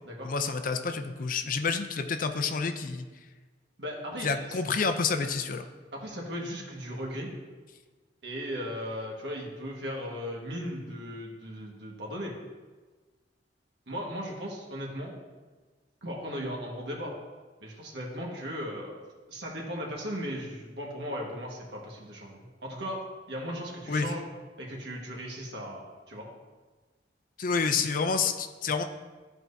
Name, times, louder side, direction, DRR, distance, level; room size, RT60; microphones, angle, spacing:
voice 1, 0.2-3.1 4.2-5.7 23.9-24.1 27.4-28.8, left 5 dB, 50° left, 7 dB, 0.5 m, -29 dB
voice 2, 3.8-4.6 5.9-7.3 8.2-12.3 13.9-15.1 16.0-17.1 17.6-24.2 24.6-26.3, equal, 70° right, -2 dB, 1.6 m, -37 dB
13.0 x 4.5 x 2.7 m, 1.3 s
head